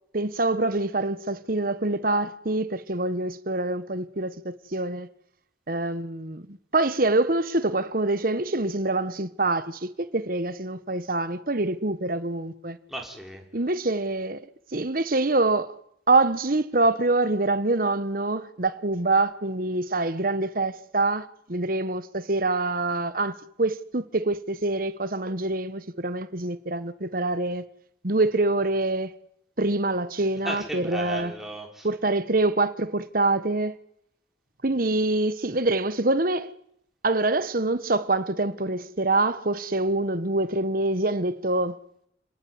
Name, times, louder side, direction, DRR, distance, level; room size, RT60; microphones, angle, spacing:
voice 1, 0.1-5.1 5.7-12.8 13.5-14.4 14.7-15.7 16.1-27.6 28.0-29.2 29.6-31.3 31.8-33.7 34.6-36.5 37.0-41.8, right 2 dB, 50° right, 1.4 m, -25 dB
voice 2, 12.9-13.4 30.2-31.9, right 1 dB, ahead, 5.0 m, -36 dB
29.5 x 19.5 x 9.6 m
head